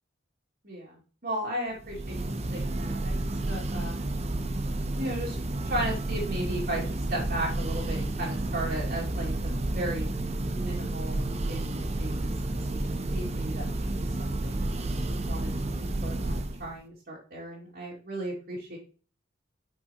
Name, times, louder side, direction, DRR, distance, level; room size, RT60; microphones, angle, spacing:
voice 1, 0.6-2.3 2.5-3.1 3.5-4.0 5.0-5.4 5.6-9.3 9.7-10.1 10.5-18.8, right 1 dB, 50° right, -5 dB, 2.4 m, -36 dB
Church bell, 1.8-16.7, right 2 dB, 35° right, 0.6 m, -31 dB
7.9 x 6.0 x 2.9 m, 0.38 s
head